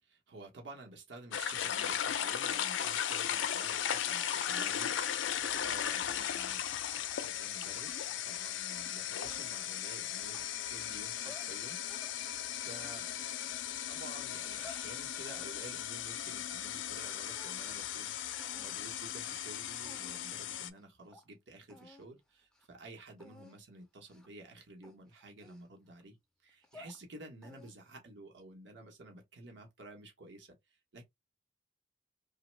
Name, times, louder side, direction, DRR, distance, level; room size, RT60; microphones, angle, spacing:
voice 1, 0.0-6.6 7.1-13.1 13.9-26.2 26.4-30.6 30.9-31.0, right 2 dB, 75° right, 1.0 m, -52 dB
sound 1, 1.3-20.7, left 10 dB, 90° left, 0.4 m, -37 dB
sound 2, 9.2-10.6 11.1-12.2 12.6-13.7 14.3-14.9 15.3-17.0 17.3-17.9 18.4-18.8 19.4-19.5 19.8-20.4 20.8-20.9 21.1-21.3 21.7-22.1 22.4-22.7 23.2-23.6 24.1-24.4 24.8-26.0 26.5-27.0 27.4-27.9, left 2 dB, 5° left, 0.4 m, -57 dB
3.0 x 2.2 x 3.2 m
head